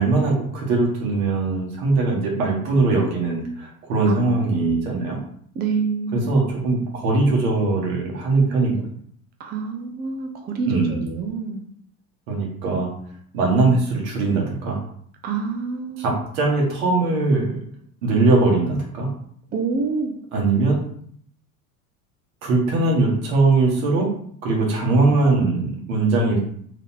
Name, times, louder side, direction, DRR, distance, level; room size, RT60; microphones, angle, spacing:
voice 1, 0.0-5.2 6.1-8.8 10.7-11.0 12.3-12.9 13.3-14.8 16.0-17.6 18.0-19.1 20.3-20.8 22.4-24.1 24.4-26.4, right 3 dB, 70° right, -1 dB, 1.6 m, -20 dB
voice 2, 4.1-4.8 5.6-6.3 9.4-11.6 15.2-16.2 19.5-20.1, right 4 dB, 20° right, 3 dB, 0.5 m, -27 dB
3.7 x 2.7 x 3.7 m, 0.62 s
hypercardioid pair, 95°, 43 cm